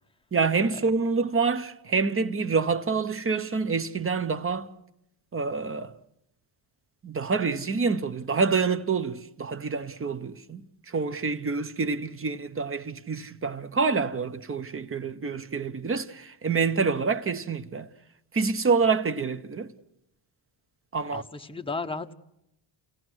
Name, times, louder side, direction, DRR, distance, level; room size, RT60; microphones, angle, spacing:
voice 1, 0.3-4.7 5.3-5.9 7.0-10.6 10.9-17.9 18.3-19.7 20.9-21.2, right 4 dB, 25° right, 0.9 m, -27 dB
voice 2, 21.1-22.1, left 3 dB, 10° left, 1.0 m, -34 dB
29.5 x 17.0 x 6.3 m
cardioid pair, 115°, 50 cm